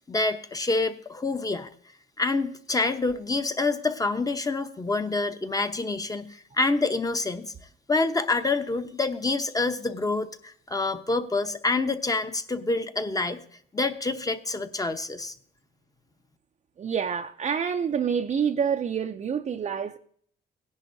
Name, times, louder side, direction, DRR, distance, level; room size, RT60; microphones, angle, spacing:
voice 1, 0.1-1.7 2.2-7.5 7.9-13.4 13.7-15.3, left 3 dB, 20° left, 0.8 m, -27 dB
voice 2, 16.8-20.0, right 7 dB, 35° right, 0.5 m, -27 dB
17.5 x 10.5 x 2.6 m
cardioid pair, 90°, 20 cm